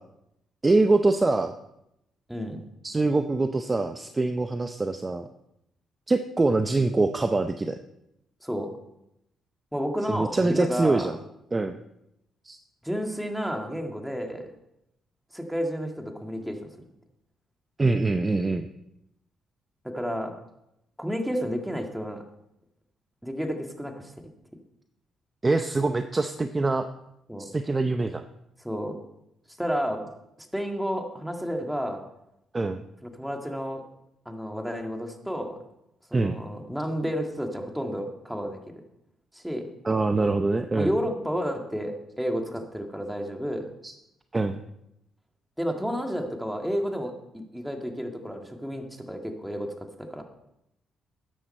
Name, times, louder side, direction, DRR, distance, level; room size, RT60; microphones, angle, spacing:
voice 1, 0.6-1.5 2.8-5.3 6.1-7.8 10.1-11.2 11.5-11.8 12.4-12.6 17.8-18.7 25.4-26.9 27.4-28.2 32.5-32.8 36.1-36.4 39.8-40.9 43.8-43.9 44.3-44.6, right 3 dB, 25° right, 8 dB, 0.6 m, -24 dB
voice 2, 2.3-2.6 8.4-8.7 9.7-11.1 12.8-14.5 15.3-16.6 19.8-20.3 21.0-22.2 23.2-24.1 27.3-27.5 28.6-29.0 29.6-30.1 30.4-32.0 33.0-33.8 34.3-35.6 36.1-38.6 39.3-39.7 40.7-43.7 45.6-49.7 50.0-50.2, equal, ahead, 3 dB, 2.0 m, -31 dB
13.0 x 10.0 x 4.4 m, 0.82 s
cardioid pair, 90°, 0 cm